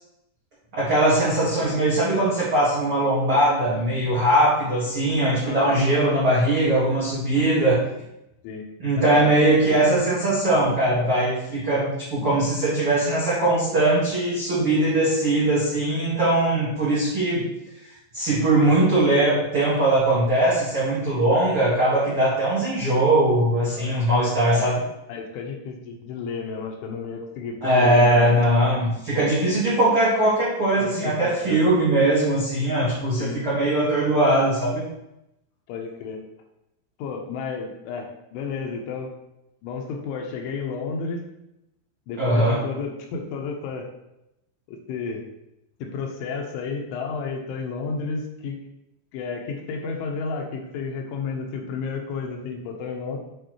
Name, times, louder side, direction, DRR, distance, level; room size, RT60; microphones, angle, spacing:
voice 1, 0.7-7.8 8.8-17.5 18.1-24.8 27.6-34.8 42.2-42.6, right 1 dB, 70° right, -8 dB, 1.3 m, -20 dB
voice 2, 5.4-5.9 7.3-7.5 8.4-8.7 8.9-9.6 23.7-24.1 24.4-24.7 25.1-28.4 29.1-29.3 30.8-31.6 33.2-33.4 35.7-36.2 37.0-39.1 39.6-41.2 42.1-43.9 44.7-45.3 45.8-48.6 49.1-53.2, left 5 dB, 80° left, 2 dB, 3.2 m, -32 dB
9.1 x 4.6 x 3.1 m, 0.86 s
omnidirectional pair, 5.7 m